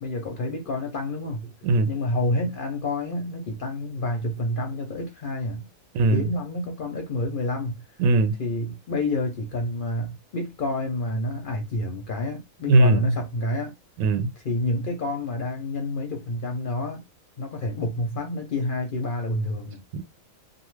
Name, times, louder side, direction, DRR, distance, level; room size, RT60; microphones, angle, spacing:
voice 1, 0.0-1.5 1.9-5.7 6.1-7.8 8.4-13.7 14.4-17.0 17.4-19.8, left 2 dB, 55° left, 0.6 m, -29 dB
voice 2, 8.0-8.3 12.7-13.1 14.0-14.3 19.9-20.0, right 2 dB, 80° right, 1.0 m, -19 dB
2.5 x 2.4 x 3.1 m
omnidirectional pair, 1.4 m